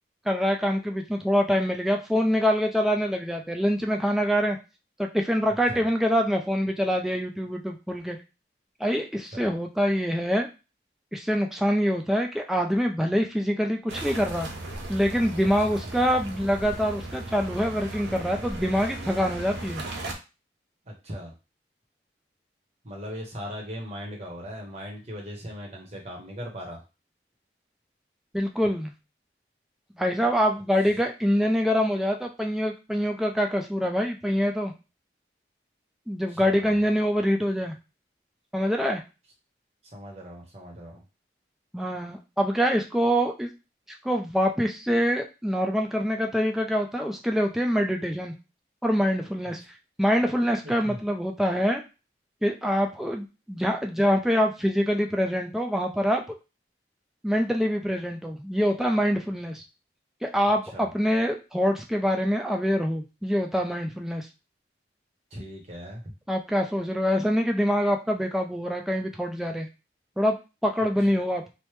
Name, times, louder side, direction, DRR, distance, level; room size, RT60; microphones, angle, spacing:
voice 1, 0.3-4.6 5.0-8.2 8.8-10.5 11.1-14.5 14.9-19.8 28.3-28.9 30.0-34.7 36.1-37.8 38.5-39.0 41.7-43.5 44.0-48.3 48.8-49.6 50.0-51.8 52.4-56.2 57.2-59.6 60.2-64.3 66.3-69.7 70.2-70.4 70.6-71.4, equal, ahead, 2 dB, 0.3 m, -25 dB
sound 1, 13.9-20.1, right 2 dB, 75° right, 0.6 m, -37 dB
voice 2, 20.9-21.3 22.8-26.8 30.8-30.9 36.3-36.8 39.9-41.0 50.6-51.0 60.7-60.9 65.3-66.0, equal, 35° right, -1 dB, 0.8 m, -39 dB
3.1 x 2.0 x 3.1 m, 0.29 s
head